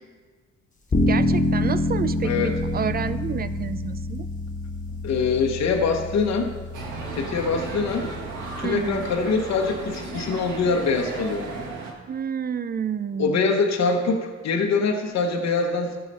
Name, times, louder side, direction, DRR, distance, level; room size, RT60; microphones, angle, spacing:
sound 1, 0.9-11.7, left 1 dB, 25° left, 1.4 m, -28 dB
voice 1, 1.0-4.3 8.6-9.1 12.1-13.5, right 7 dB, 30° right, 14 dB, 0.4 m, -29 dB
voice 2, 2.2-2.5 5.0-6.5 7.2-8.1 8.6-11.5 13.2-16.0, left 4 dB, 60° left, 2 dB, 1.0 m, -24 dB
sound 2, 6.7-11.9, right 3 dB, 80° right, 1.6 m, -35 dB
14.0 x 4.8 x 4.2 m, 1.4 s
cardioid pair, 90°, 30 cm